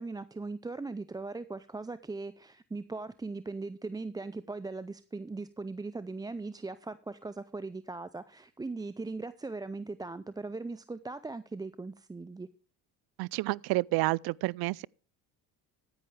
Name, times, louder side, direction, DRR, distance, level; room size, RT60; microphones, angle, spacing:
voice 1, 0.0-12.5, right 3 dB, 10° right, 0.5 m, -39 dB
voice 2, 13.2-14.9, right 22 dB, 60° right, 0.5 m, -29 dB
14.5 x 10.5 x 3.3 m
supercardioid pair, 90°, 42 cm